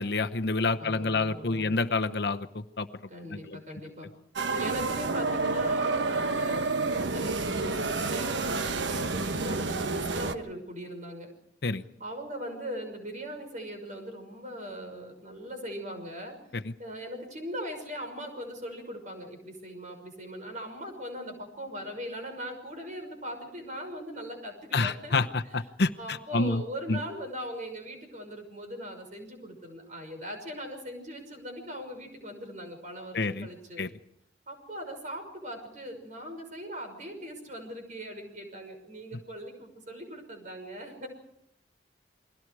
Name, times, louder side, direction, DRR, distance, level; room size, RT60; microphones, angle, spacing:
voice 1, 0.0-2.9 3.3-3.6 11.6-11.8 16.5-16.7 24.7-26.6 26.9-27.0 33.1-33.5 33.8-33.9, left 3 dB, 60° left, 9 dB, 0.9 m, -28 dB
voice 2, 0.8-1.8 3.1-4.1 4.5-11.3 12.0-16.4 16.8-25.1 26.0-33.8 34.5-41.1, equal, 45° right, 5 dB, 6.1 m, -40 dB
sound 1, 4.4-10.4, right 3 dB, 90° right, 1.1 m, -29 dB
29.5 x 22.0 x 4.8 m, 0.76 s
head